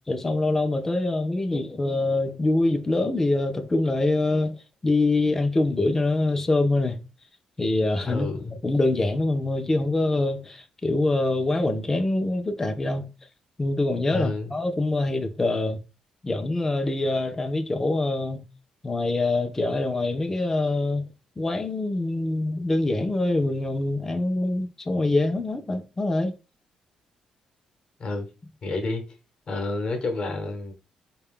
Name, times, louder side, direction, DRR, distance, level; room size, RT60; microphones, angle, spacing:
voice 1, 0.1-4.6 4.8-7.0 7.6-13.1 13.6-15.8 16.2-18.4 18.8-21.0 21.4-26.4, left 2 dB, 15° left, 0.4 m, -24 dB
voice 2, 8.0-8.5 14.1-14.5 28.0-28.3 28.6-29.0 29.5-30.7, left 2 dB, 45° left, 0.9 m, -29 dB
4.4 x 2.2 x 3.6 m
cardioid pair, 110°, 2 cm